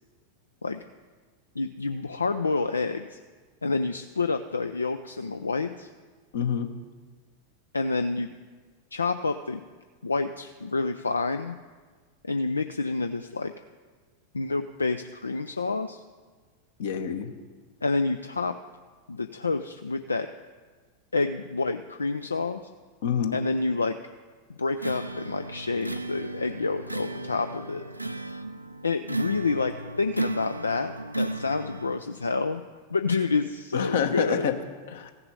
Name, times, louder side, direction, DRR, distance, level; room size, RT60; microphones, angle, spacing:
voice 1, 1.6-3.2 3.6-5.9 7.7-8.3 8.9-9.6 10.0-11.5 12.2-13.5 14.3-16.0 17.8-18.5 19.1-20.3 21.1-22.6 23.3-24.0 24.6-27.8 28.8-32.6 32.9-34.5, left 3 dB, 75° left, 9 dB, 0.4 m, -28 dB
voice 2, 6.3-6.7 16.8-17.3 23.0-23.4 33.7-34.5 34.9-35.1, left 8 dB, 60° left, 7 dB, 1.1 m, -27 dB
sound 1, 24.8-32.0, right 2 dB, 90° right, 0.5 m, -35 dB
15.0 x 6.8 x 5.4 m, 1.4 s
figure-of-eight pair, 90°, 0 cm